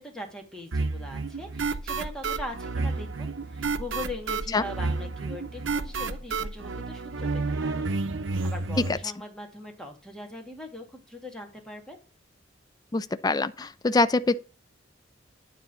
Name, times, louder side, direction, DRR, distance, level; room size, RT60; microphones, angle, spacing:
voice 1, 0.0-8.1 8.4-12.0, left 1 dB, 5° left, 2.0 m, -41 dB
sound 1, 0.7-9.0, right 3 dB, 90° right, 0.7 m, -30 dB
voice 2, 12.9-14.4, left 3 dB, 20° left, 0.4 m, -24 dB
9.7 x 3.9 x 6.8 m
head